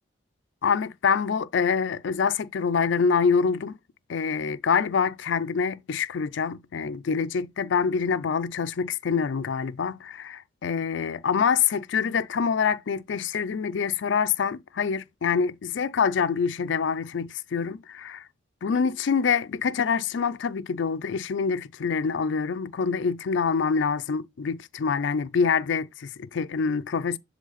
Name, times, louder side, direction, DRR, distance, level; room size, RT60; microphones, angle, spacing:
voice 1, 0.6-3.8 4.1-18.2 18.6-27.2, left 6 dB, 75° left, 0.4 m, -26 dB
7.4 x 3.3 x 4.0 m
head